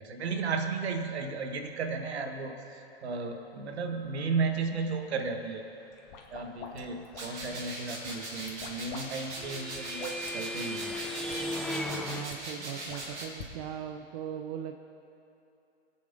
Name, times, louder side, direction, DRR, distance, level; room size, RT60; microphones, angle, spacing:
voice 1, 0.0-5.6 6.3-11.0, right 4 dB, 70° right, 5 dB, 1.6 m, -34 dB
sound 1, 5.9-7.6 8.0-9.0 9.3-10.3 10.9-11.0 11.3-11.4 11.7-12.4 12.9-13.5, left 6 dB, 45° left, 2.0 m, -46 dB
sound 2, 7.1-13.2, right 1 dB, 90° right, 3.5 m, -41 dB
sound 3, 8.4-12.2, left 1 dB, ahead, 0.6 m, -36 dB
voice 2, 12.1-14.7, right 9 dB, 40° right, 5 dB, 0.8 m, -39 dB
23.0 x 8.7 x 3.9 m, 2.8 s
hypercardioid pair, 125°, 33 cm